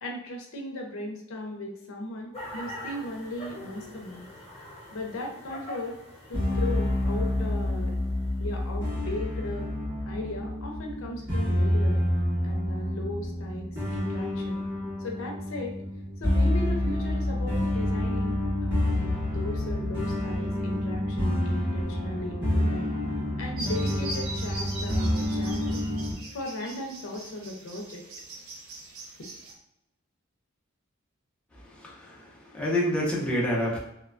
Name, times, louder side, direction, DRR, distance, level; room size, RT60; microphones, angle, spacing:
voice 1, 0.0-4.3 4.9-6.0 6.3-7.9 8.4-9.7 10.1-12.0 12.4-14.6 15.0-15.7 16.2-22.9 23.4-25.8 26.3-28.0, left 1 dB, 70° left, 1 dB, 0.6 m, -37 dB
sound 1, 2.3-9.3, left 1 dB, 30° left, 0.8 m, -44 dB
sound 2, 6.3-26.1, left 1 dB, 55° right, 1.4 m, -28 dB
sound 3, 23.6-29.5, right 2 dB, 80° right, 0.5 m, -41 dB
voice 2, 31.5-33.8, equal, 5° left, -5 dB, 0.5 m, -28 dB
3.0 x 2.2 x 2.4 m, 0.83 s
head